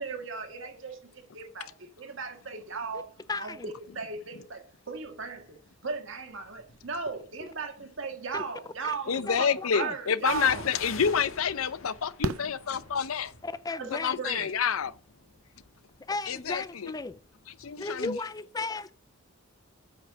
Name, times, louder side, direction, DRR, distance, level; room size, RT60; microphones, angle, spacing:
voice 1, 0.0-10.6 13.7-14.5, right 5 dB, 65° right, 1.7 m, -37 dB
voice 2, 3.3-3.7 8.3-8.4 8.8-8.9 9.3-9.9 13.4-14.4 16.1-17.2 17.8-18.9, left 3 dB, 20° left, 0.4 m, -35 dB
sound 1, 5.2-5.6 6.3-7.3 10.2-17.8 18.1-18.2, left 3 dB, 75° left, 1.5 m, -47 dB
voice 3, 9.1-13.3 13.9-14.9 16.3-16.9 17.6-18.2, left 7 dB, 90° left, 0.7 m, -28 dB
Fireworks, 12.2-13.5 15.3-15.4 15.6-15.7, right 4 dB, 90° right, 0.5 m, -35 dB
8.7 x 5.7 x 6.0 m
head